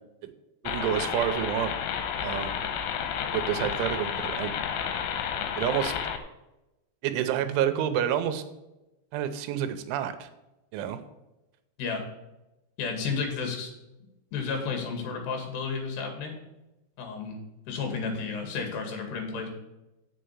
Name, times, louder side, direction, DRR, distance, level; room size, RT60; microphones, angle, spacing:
voice 1, 0.6-1.7 2.2-2.5 3.3-4.5 5.6-5.9 7.0-8.4 9.1-10.3 10.7-11.0, right 10 dB, 85° right, 10 dB, 3.2 m, -28 dB
sound 1, 0.7-6.2, left 8 dB, 85° left, 3.5 m, -31 dB
voice 2, 12.8-13.7 14.3-16.4 17.0-17.4 17.7-19.5, left 5 dB, 65° left, 3 dB, 3.9 m, -32 dB
7.6 x 6.8 x 8.0 m, 0.98 s
omnidirectional pair, 5.5 m